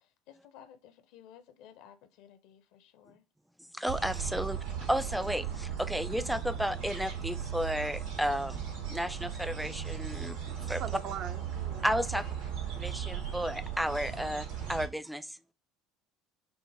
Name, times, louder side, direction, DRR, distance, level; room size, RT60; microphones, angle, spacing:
voice 1, 0.3-3.2 12.1-12.2, left 10 dB, 65° left, 0.6 m, -53 dB
voice 2, 3.7-8.6 8.9-10.4 10.7-10.8 11.8-12.2 12.8-15.4, equal, ahead, 0.4 m, -33 dB
sound 1, 3.9-14.9, right 8 dB, 75° right, 1.3 m, -37 dB
voice 3, 10.7-11.9, right 8 dB, 55° right, 0.5 m, -40 dB
6.1 x 2.1 x 3.3 m
hypercardioid pair, 65°, 0 cm